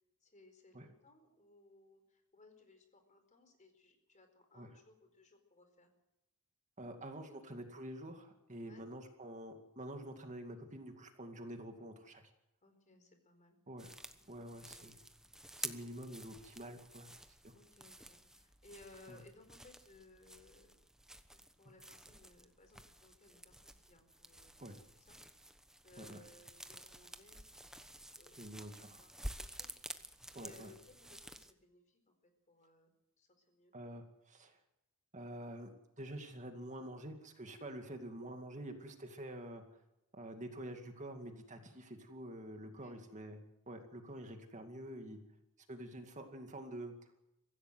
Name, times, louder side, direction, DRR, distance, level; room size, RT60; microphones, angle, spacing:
voice 1, 0.2-5.9 8.6-8.9 12.6-13.6 14.2-14.4 14.7-14.9 15.6-15.7 17.5-20.8 21.2-25.2 25.8-27.4 27.7-28.5 28.8-29.7 30.3-32.9 33.2-33.7 42.6-43.0, left 2 dB, 35° left, 6 dB, 4.4 m, -63 dB
voice 2, 6.8-12.2 13.7-13.9 14.3-15.0 15.6-17.5 19.1-19.2 24.6-24.8 26.0-26.2 28.4-29.0 30.4-30.7 33.7-34.6 35.1-35.7 36.0-39.6 40.1-43.4 43.7-45.2 45.7-46.9, right 1 dB, 35° right, 5 dB, 2.3 m, -47 dB
sound 1, 13.8-31.5, right 1 dB, ahead, 1.1 m, -51 dB
24.0 x 15.5 x 7.9 m, 0.91 s
head